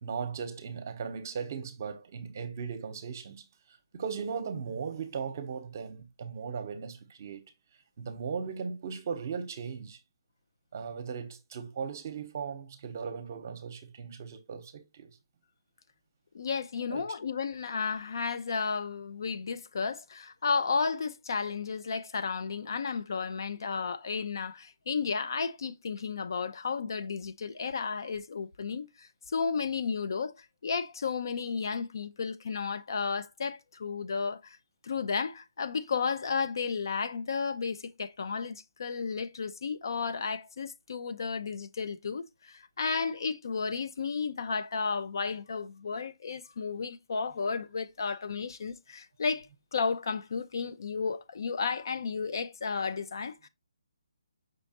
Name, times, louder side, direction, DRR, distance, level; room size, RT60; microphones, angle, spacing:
voice 1, 0.0-3.5 3.9-7.4 8.0-10.0 10.7-15.2 16.9-17.1, right 6 dB, 40° right, 0.8 m, -37 dB
voice 2, 16.3-34.6 34.8-53.5, left 5 dB, 60° left, 0.5 m, -33 dB
5.3 x 3.2 x 2.8 m
hypercardioid pair, 160°, 2 cm